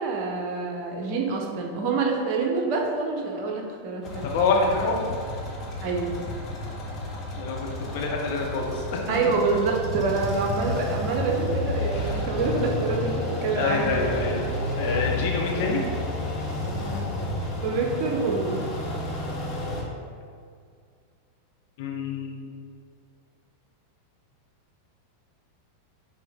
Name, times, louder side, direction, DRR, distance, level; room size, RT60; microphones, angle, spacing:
voice 1, 0.0-4.3 5.8-6.1 9.1-14.2 17.6-18.6, right 4 dB, 45° right, 1 dB, 1.0 m, -26 dB
sound 1, 4.0-19.8, left 2 dB, 30° left, 1.2 m, -31 dB
voice 2, 4.2-5.0 7.4-9.0 12.0-12.1 13.6-14.4 14.8-15.8 21.8-22.4, left 4 dB, 50° left, -1 dB, 1.0 m, -26 dB
6.4 x 4.4 x 3.7 m, 2.2 s
figure-of-eight pair, 90°, 0 cm